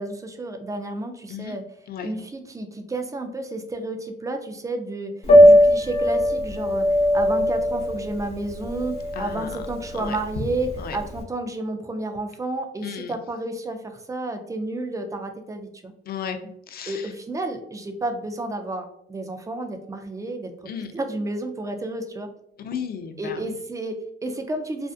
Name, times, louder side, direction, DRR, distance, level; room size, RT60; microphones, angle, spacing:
voice 1, 0.0-1.6 2.0-5.1 5.4-6.9 7.1-15.9 16.9-20.5 20.9-22.3 23.2-24.9, right 2 dB, 15° right, 5 dB, 0.4 m, -31 dB
Piano, 5.2-11.2, equal, 30° left, 1.0 m, -19 dB
voice 2, 9.2-9.6 10.0-10.2 10.8-11.0 12.8-13.1 16.1-17.1 20.7-20.9 22.6-23.5, left 7 dB, 50° left, 7 dB, 0.4 m, -34 dB
2.5 x 2.4 x 2.3 m, 0.72 s
cardioid pair, 90°, 20 cm